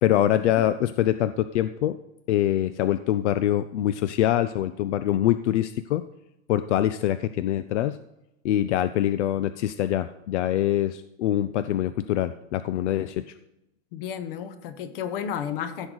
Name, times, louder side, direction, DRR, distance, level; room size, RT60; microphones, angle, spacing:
voice 1, 0.0-2.0 2.3-6.0 6.5-8.0 8.4-13.3, left 12 dB, 75° left, 13 dB, 0.6 m, -24 dB
voice 2, 13.9-15.9, left 8 dB, 50° left, 11 dB, 1.1 m, -32 dB
15.0 x 6.4 x 4.0 m, 0.89 s
supercardioid pair, 170°, 35 cm